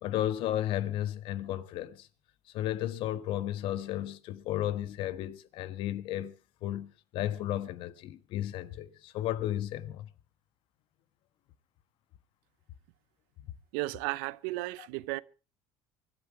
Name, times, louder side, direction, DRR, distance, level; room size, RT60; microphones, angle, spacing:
voice 1, 0.0-2.1 2.5-6.3 6.6-10.1 13.4-13.5 14.8-14.9, left 12 dB, 65° left, 1.3 m, -33 dB
voice 2, 13.7-15.2, right 20 dB, 85° right, 0.7 m, -34 dB
24.5 x 11.0 x 4.6 m
supercardioid pair, 100°, 9 cm